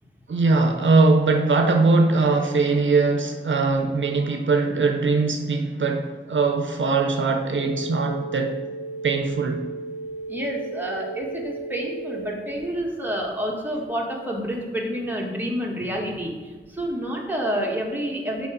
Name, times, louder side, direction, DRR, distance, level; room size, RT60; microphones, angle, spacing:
voice 1, 0.3-8.6 9.0-9.6, right 3 dB, 75° right, 0.6 m, -21 dB
sound 1, 7.5-12.5, right 2 dB, 55° left, 0.9 m, -35 dB
voice 2, 10.3-18.5, equal, 10° right, 1.5 m, -28 dB
6.9 x 4.5 x 5.1 m
wide cardioid pair, 70°, 20 cm